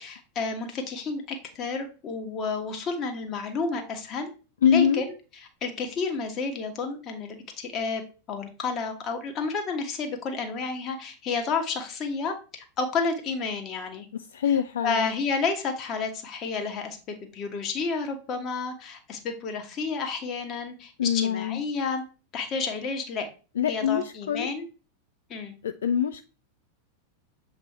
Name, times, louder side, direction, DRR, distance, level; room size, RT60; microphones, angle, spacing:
voice 1, 0.0-4.3 4.6-5.1 5.6-8.0 8.3-14.1 14.5-14.6 14.8-22.0 22.3-23.3 23.7-24.7 25.3-25.5, left 4 dB, 30° left, 1.4 m, -31 dB
voice 2, 4.6-5.0 14.3-15.1 21.0-21.6 23.6-24.5 25.6-26.2, left 8 dB, 65° left, 0.3 m, -24 dB
7.4 x 3.3 x 4.2 m
figure-of-eight pair, 90°, 0 cm